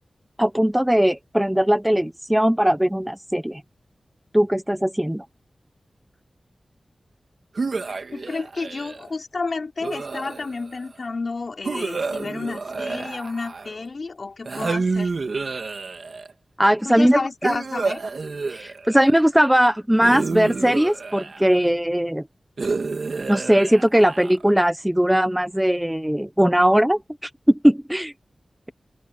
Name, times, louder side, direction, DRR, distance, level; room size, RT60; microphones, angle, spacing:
voice 1, 0.4-3.6 4.3-5.2 16.6-17.5 18.5-22.3 23.3-28.1, equal, 10° right, 0.9 m, -19 dB
sound 1, 7.6-9.1 9.8-10.7 11.6-13.8 14.5-16.3 17.4-19.2 20.0-21.7 22.6-24.5, right 4 dB, 65° right, 2.4 m, -29 dB
voice 2, 8.1-15.1 16.8-18.0, left 3 dB, 60° left, 5.7 m, -31 dB
open air
wide cardioid pair, 60°, 0 cm